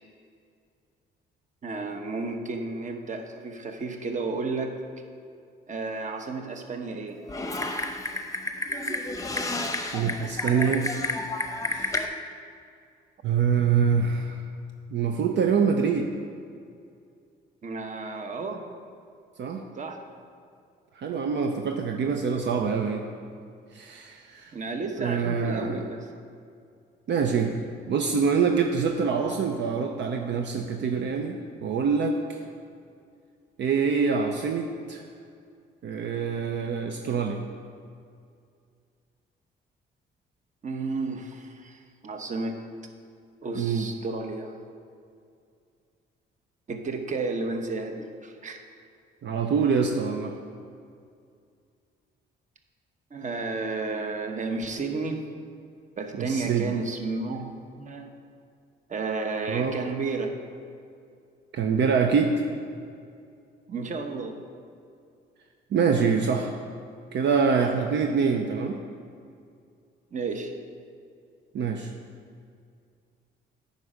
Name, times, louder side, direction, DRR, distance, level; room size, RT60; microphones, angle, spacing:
voice 1, 1.6-4.7 5.7-7.2 17.6-18.6 19.7-20.0 24.5-26.1 40.6-42.6 43.4-44.6 46.7-48.6 53.1-55.2 56.0-58.1 58.9-60.4 63.7-64.4 70.1-70.5, right 3 dB, 40° right, 4 dB, 1.0 m, -32 dB
Typing, 7.3-12.1, left 2 dB, 15° left, 0.8 m, -30 dB
voice 2, 9.8-10.9 11.7-12.0 13.2-14.4 14.9-16.1 19.4-19.6 21.0-23.0 23.7-24.5 25.0-25.8 27.1-27.5 27.9-32.4 33.6-35.0 35.8-37.4 43.5-43.9 49.2-50.3 56.2-56.7 59.5-59.8 61.5-62.3 65.7-66.5 67.1-68.8 71.5-71.9, right 6 dB, 65° right, 3 dB, 0.6 m, -25 dB
9.2 x 5.4 x 5.0 m, 2.3 s
cardioid pair, 90°, 20 cm